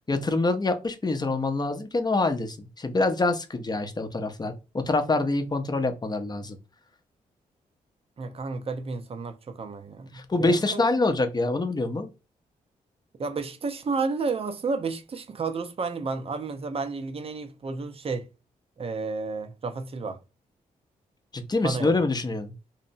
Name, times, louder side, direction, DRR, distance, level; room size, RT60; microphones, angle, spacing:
voice 1, 0.1-6.6 10.1-12.1 21.3-22.5, left 2 dB, 25° left, 0.6 m, -26 dB
voice 2, 8.2-10.8 13.2-18.3 18.8-20.2 21.6-22.0, right 4 dB, 40° right, 0.5 m, -31 dB
2.7 x 2.0 x 2.6 m
supercardioid pair, 50°, 16 cm